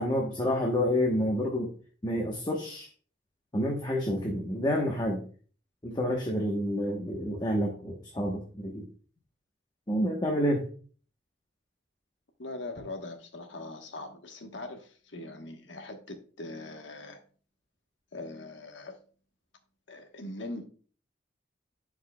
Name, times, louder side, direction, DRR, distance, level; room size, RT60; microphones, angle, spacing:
voice 1, 0.0-1.7 2.0-2.9 3.5-5.2 5.8-8.9 9.9-10.6, equal, 25° left, 1.0 m, -29 dB
voice 2, 12.4-17.2 18.1-19.0 19.9-20.6, left 2 dB, 90° left, 1.1 m, -41 dB
10.5 x 4.9 x 2.2 m
head